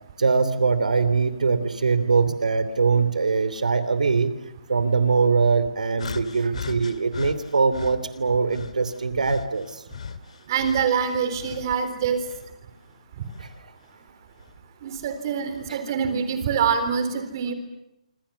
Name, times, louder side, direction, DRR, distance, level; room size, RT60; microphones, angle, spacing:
voice 1, 0.2-4.3 4.7-9.8 13.4-13.5 15.7-15.8, right 4 dB, 90° right, 13 dB, 3.0 m, -22 dB
sound 1, 6.0-8.0 8.5-11.8 12.2-13.6 14.4-14.6 15.5-15.7, left 6 dB, 60° left, 2.2 m, -38 dB
voice 2, 10.5-12.2 14.8-17.5, right 7 dB, 30° right, 9 dB, 3.9 m, -25 dB
26.5 x 25.5 x 7.1 m, 0.86 s
hypercardioid pair, 165°, 4 cm